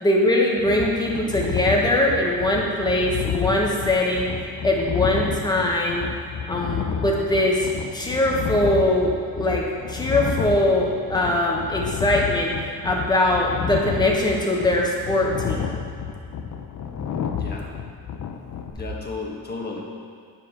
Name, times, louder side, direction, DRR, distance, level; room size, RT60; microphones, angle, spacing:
voice 1, 0.0-4.3 4.6-6.0 6.5-12.5 12.8-15.8, left 1 dB, 10° left, -2 dB, 1.3 m, -22 dB
sound 1, 0.6-18.7, left 7 dB, 55° left, 0.7 m, -30 dB
voice 2, 17.3-17.7 18.7-19.8, left 3 dB, 30° left, -2 dB, 1.5 m, -33 dB
9.2 x 4.9 x 5.9 m, 2.3 s
cardioid pair, 130°, 35 cm